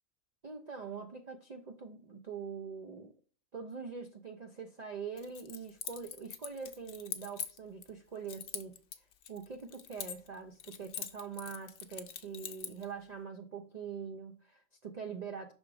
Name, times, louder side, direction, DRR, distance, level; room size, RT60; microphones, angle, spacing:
voice 1, 0.4-3.1 3.5-8.8 9.3-15.5, right 6 dB, 45° right, 0.5 m, -44 dB
Keys jangling, 5.2-7.9 8.3-10.4 10.6-12.9, left 8 dB, 65° left, 1.0 m, -43 dB
5.9 x 4.1 x 4.7 m
omnidirectional pair, 1.4 m